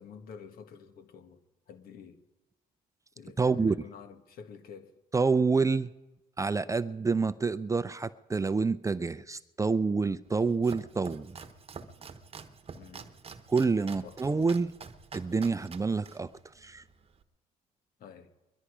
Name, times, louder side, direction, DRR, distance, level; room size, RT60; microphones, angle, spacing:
voice 1, 0.0-1.4 1.7-2.2 3.2-4.9 12.8-13.1 14.0-14.2 18.0-18.3, left 6 dB, 70° left, 1.5 m, -49 dB
voice 2, 3.4-3.8 5.1-5.9 6.4-11.4 13.5-14.7 15.1-16.3 16.6-16.8, right 4 dB, 20° right, 0.5 m, -27 dB
Domestic sounds home sounds, 10.3-17.2, right 5 dB, 40° right, 1.0 m, -48 dB
22.0 x 11.5 x 5.0 m
cardioid pair, 80°, 16 cm